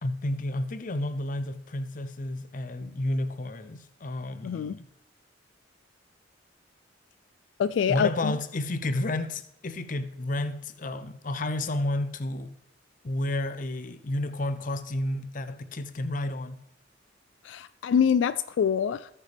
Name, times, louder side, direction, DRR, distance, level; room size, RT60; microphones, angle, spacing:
voice 1, 0.0-4.9 7.9-12.5 13.0-16.6, left 1 dB, 45° left, 0.6 m, -31 dB
voice 2, 4.4-4.8 7.6-8.4 17.4-19.1, left 7 dB, 80° left, 0.3 m, -25 dB
18.5 x 6.7 x 3.4 m
head